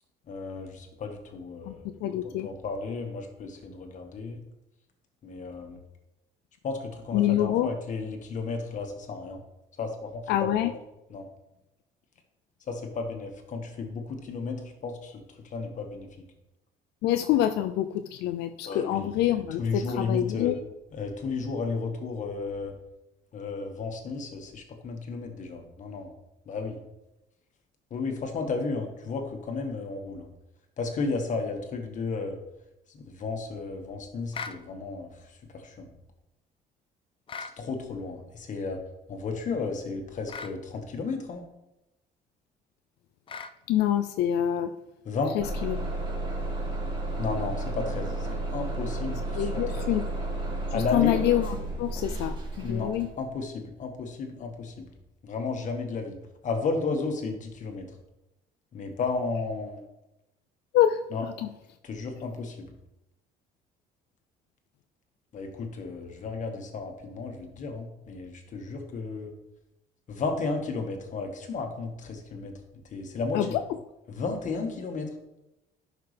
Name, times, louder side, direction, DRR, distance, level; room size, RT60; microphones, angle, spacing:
voice 1, 0.3-4.4 5.2-5.8 6.6-9.4 9.8-10.7 11.1-11.2 12.7-16.3 18.7-20.5 20.9-22.7 23.3-26.1 26.4-26.8 27.9-30.3 30.8-32.4 32.9-35.9 37.4-38.8 39.1-41.5 45.0-45.4 47.2-49.9 50.7-51.2 52.6-54.9 55.2-56.2 56.4-57.9 58.7-59.8 61.1-61.3 61.8-62.7 65.3-69.3 70.1-73.6 74.1-75.1, left 4 dB, 50° left, 4 dB, 1.6 m, -33 dB
voice 2, 2.0-2.5 7.1-7.7 10.3-10.7 17.0-20.6 43.7-44.7 45.3-45.9 49.4-50.0 50.7-53.1 60.7-61.0 73.3-73.5, left 12 dB, 80° left, 8 dB, 0.4 m, -26 dB
sound 1, 34.3-34.6 37.3-37.6 40.3-40.6 43.3-43.6, left 5 dB, 30° left, 0.5 m, -38 dB
Bus / Engine starting, 45.4-53.2, right 2 dB, 30° right, 2.4 m, -32 dB
11.0 x 5.8 x 3.4 m, 0.93 s
cardioid pair, 110°, 17 cm